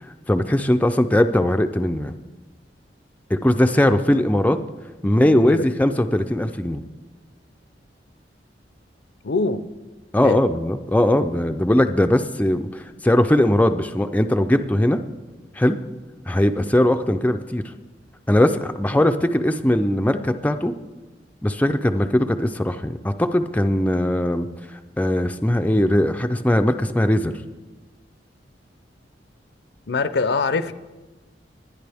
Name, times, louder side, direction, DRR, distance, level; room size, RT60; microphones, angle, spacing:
voice 1, 0.3-2.1 3.3-4.6 5.0-6.8 10.1-15.0 15.6-15.8 16.3-17.6 18.3-20.7 21.4-24.5 24.7-27.3, left 1 dB, 10° left, 7 dB, 0.4 m, -20 dB
voice 2, 5.0-5.7 9.2-9.7 10.2-10.4 29.9-30.7, left 3 dB, 65° left, 13 dB, 0.6 m, -24 dB
20.0 x 10.0 x 3.5 m, 1.2 s
head